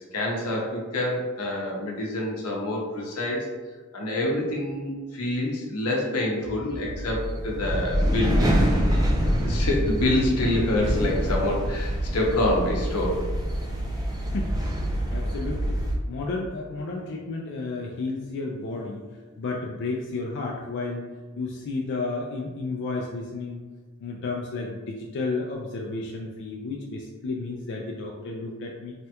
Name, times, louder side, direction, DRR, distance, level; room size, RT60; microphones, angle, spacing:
voice 1, 0.1-3.5 3.9-8.8 9.4-13.2, left 1 dB, 85° left, -1 dB, 0.7 m, -27 dB
sound 1, 6.8-16.0, equal, 15° right, 0.4 m, -26 dB
voice 2, 14.9-15.7 16.1-19.0 19.4-21.0 21.4-23.6 24.0-28.9, left 3 dB, 55° left, -1 dB, 0.3 m, -32 dB
3.3 x 2.2 x 2.8 m, 1.3 s
head